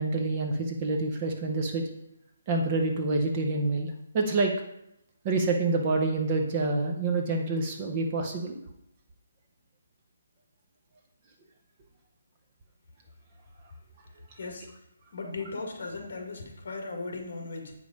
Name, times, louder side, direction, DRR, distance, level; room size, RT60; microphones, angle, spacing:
voice 1, 0.0-1.8 2.5-4.5 5.2-8.6, right 3 dB, 20° right, 3 dB, 0.6 m, -27 dB
voice 2, 14.4-14.7 15.1-17.7, left 3 dB, 50° left, 2 dB, 1.8 m, -37 dB
8.1 x 5.2 x 5.1 m, 0.82 s
hypercardioid pair, 180°, 0 cm